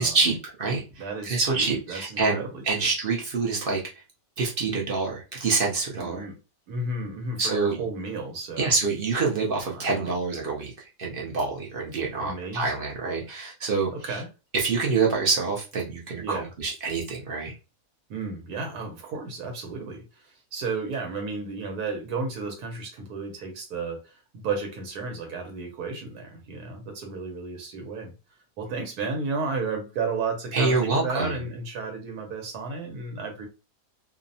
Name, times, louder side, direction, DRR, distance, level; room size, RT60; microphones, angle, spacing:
voice 1, 0.0-3.8 4.4-6.3 7.4-7.8 8.6-14.2 14.5-17.5 30.5-31.4, right 4 dB, 55° right, 0.6 m, -26 dB
voice 2, 1.0-2.9 6.0-6.4 6.7-8.7 9.7-10.2 12.2-12.8 13.9-14.3 16.2-16.5 18.1-28.1 28.6-33.5, right 4 dB, 85° right, 1.2 m, -33 dB
2.7 x 2.0 x 2.6 m
omnidirectional pair, 1.6 m